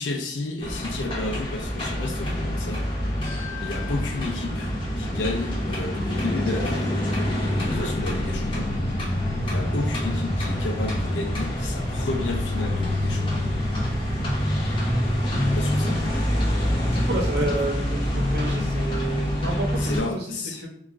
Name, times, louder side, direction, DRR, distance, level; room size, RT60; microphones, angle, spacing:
voice 1, 0.0-2.8 3.6-8.7 9.5-13.4 15.5-16.0 17.4-17.5 19.8-20.6, left 2 dB, 85° left, 3 dB, 0.4 m, -32 dB
sound 1, 0.6-20.0, left 1 dB, 30° left, 0.6 m, -26 dB
voice 2, 16.8-20.7, right 2 dB, 65° right, 1 dB, 0.7 m, -30 dB
2.9 x 2.3 x 2.4 m, 0.63 s
head